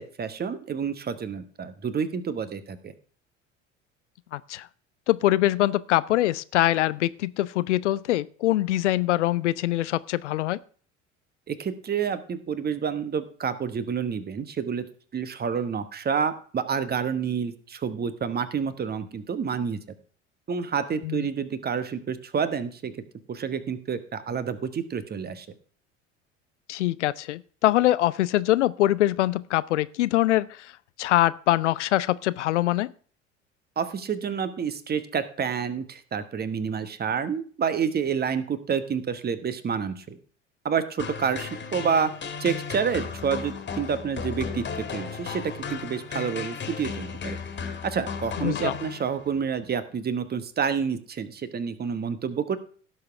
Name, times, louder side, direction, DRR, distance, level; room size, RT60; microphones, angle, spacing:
voice 1, 0.0-2.9 11.5-14.8 15.1-19.8 20.5-22.9 23.3-25.5 33.8-40.2 40.6-42.1 42.4-47.4 47.8-52.6, right 6 dB, 25° right, 1.2 m, -29 dB
voice 2, 4.3-4.7 5.1-10.6 21.0-21.3 26.7-30.7 31.0-32.9 48.4-48.7, left 15 dB, 70° left, 0.5 m, -23 dB
sound 1, 41.0-49.4, left 5 dB, 30° left, 2.1 m, -35 dB
16.5 x 6.8 x 3.5 m
figure-of-eight pair, 65°, 37 cm